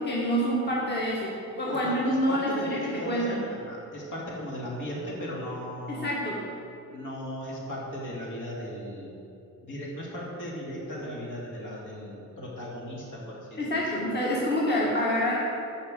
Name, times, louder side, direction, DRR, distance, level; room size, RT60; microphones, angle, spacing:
voice 1, 0.1-3.4 5.9-6.4 13.6-15.3, equal, 30° left, -5 dB, 1.7 m, -27 dB
voice 2, 1.7-6.1 6.9-9.2 9.6-14.0, equal, 65° left, -4 dB, 3.0 m, -37 dB
11.5 x 5.9 x 7.6 m, 2.8 s
cardioid pair, 150°, 34 cm